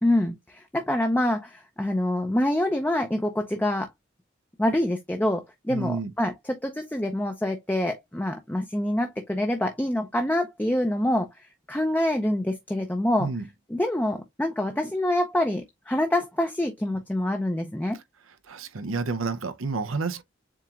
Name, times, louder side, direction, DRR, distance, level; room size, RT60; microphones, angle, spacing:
voice 1, 0.0-3.9 4.6-13.3 13.7-18.0, left 1 dB, 10° left, 0.5 m, -26 dB
voice 2, 5.7-6.1 13.2-13.5 17.9-18.0 18.5-20.2, right 4 dB, 90° right, 0.7 m, -30 dB
7.4 x 2.9 x 2.4 m
head